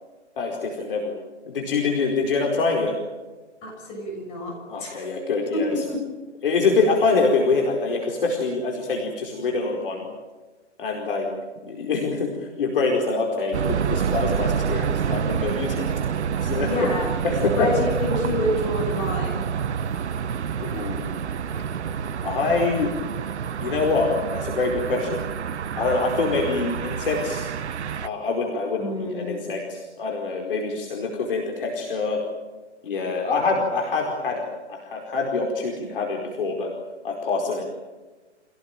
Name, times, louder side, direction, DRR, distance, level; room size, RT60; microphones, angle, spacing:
voice 1, 0.4-1.2 1.5-2.9 4.7-5.8 6.4-10.0 10.8-11.3 11.7-12.3 12.6-15.9 16.4-16.9 17.2-17.7 20.6-21.2 22.2-22.9 23.6-25.2 25.8-27.5 28.0-32.2 32.8-36.7 37.0-37.8, left 4 dB, 50° left, 0 dB, 4.8 m, -25 dB
voice 2, 3.6-5.2 5.5-6.0 16.6-17.2 17.5-19.4 28.8-29.4, left 1 dB, 15° left, -1 dB, 6.9 m, -28 dB
sound 1, 13.5-28.1, right 7 dB, 70° right, 0.9 m, -27 dB
27.5 x 18.0 x 9.1 m, 1.2 s
hypercardioid pair, 165°, 36 cm